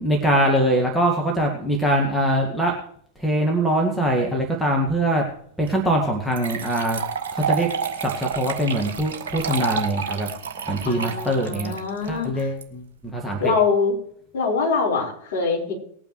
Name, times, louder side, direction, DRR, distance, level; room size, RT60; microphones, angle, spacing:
voice 1, 0.0-2.7 3.2-5.2 5.6-7.0 7.3-7.7 8.0-10.3 10.7-11.7 12.0-13.5, right 1 dB, ahead, 0 dB, 1.9 m, -22 dB
sound 1, 5.7-5.8 6.3-12.6, right 6 dB, 60° right, 1.5 m, -29 dB
voice 2, 10.8-12.5 13.4-14.0 14.3-15.7, left 4 dB, 55° left, -4 dB, 4.9 m, -23 dB
20.0 x 8.9 x 3.2 m, 0.62 s
figure-of-eight pair, 90°, 0 cm